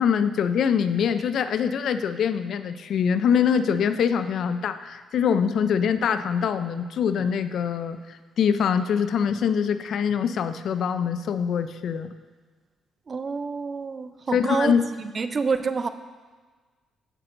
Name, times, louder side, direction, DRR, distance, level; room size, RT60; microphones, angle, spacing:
voice 1, 0.0-12.1 14.3-14.9, left 7 dB, 65° left, 11 dB, 0.4 m, -24 dB
voice 2, 13.1-14.8 15.1-15.9, right 5 dB, 40° right, 11 dB, 0.4 m, -27 dB
15.5 x 5.9 x 2.6 m, 1.4 s
cardioid pair, 90°, 0 cm